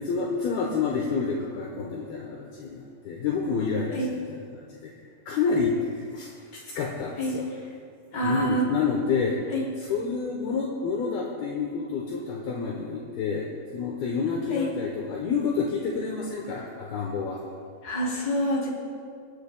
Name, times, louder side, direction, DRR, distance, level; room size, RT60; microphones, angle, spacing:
voice 1, 0.0-4.9 5.3-7.4 8.2-9.4 9.8-17.4, left 5 dB, 75° left, -1 dB, 2.6 m, -29 dB
voice 2, 8.1-8.6 9.5-9.7 14.5-14.7 17.8-18.7, equal, 25° left, -5 dB, 3.0 m, -26 dB
28.5 x 10.0 x 2.2 m, 2.1 s
omnidirectional pair, 5.0 m